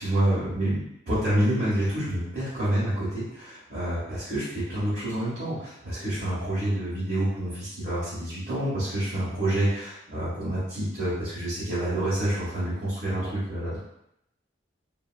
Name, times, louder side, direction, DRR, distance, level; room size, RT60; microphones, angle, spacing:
voice 1, 0.0-0.8 1.1-13.8, right 1 dB, 45° right, -14 dB, 1.1 m, -28 dB
2.8 x 2.7 x 2.4 m, 0.79 s
head